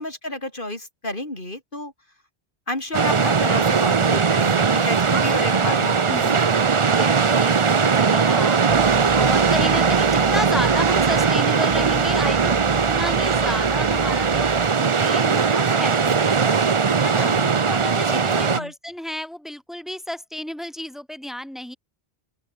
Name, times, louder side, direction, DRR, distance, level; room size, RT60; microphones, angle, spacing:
voice 1, 0.0-1.9 2.7-6.4 17.2-17.6 18.1-18.7, left 1 dB, 55° left, 4.5 m, -30 dB
sound 1, 2.9-18.6, right 5 dB, 35° right, 0.7 m, -19 dB
voice 2, 6.9-8.8 9.1-12.6 12.9-14.5 14.8-16.6 17.0-17.3 17.6-21.8, left 1 dB, ahead, 4.6 m, -32 dB
sound 2, 8.7-14.7, right 2 dB, 80° right, 4.6 m, -36 dB
open air
omnidirectional pair, 1.1 m